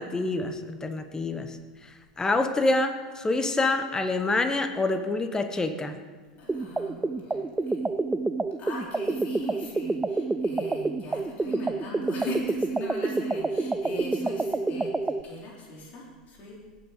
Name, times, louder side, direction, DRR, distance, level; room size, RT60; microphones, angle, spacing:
voice 1, 0.0-1.6 2.2-6.0, left 2 dB, 15° left, 8 dB, 1.1 m, -26 dB
voice 2, 6.4-7.8 8.6-16.6, left 2 dB, 40° left, -4 dB, 4.1 m, -40 dB
sound 1, 6.5-15.2, right 3 dB, 10° right, 0.5 m, -28 dB
17.5 x 6.4 x 5.1 m, 1.4 s
hypercardioid pair, 85°, 4 cm